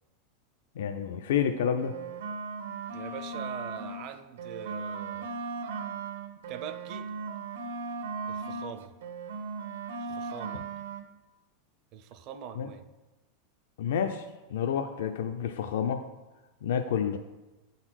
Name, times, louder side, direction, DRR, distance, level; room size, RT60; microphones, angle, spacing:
voice 1, 0.8-1.9 12.6-12.7 13.8-16.0 16.6-17.2, left 8 dB, 75° left, 6 dB, 0.5 m, -29 dB
sound 1, 1.7-4.1 4.4-8.7 9.0-11.0, right 4 dB, 85° right, 0.8 m, -37 dB
voice 2, 2.9-5.3 6.5-7.1 8.3-8.9 10.0-10.7 11.9-12.9, right 8 dB, 35° right, 9 dB, 0.5 m, -43 dB
8.8 x 4.0 x 6.2 m, 1.1 s
supercardioid pair, 175°, 0 cm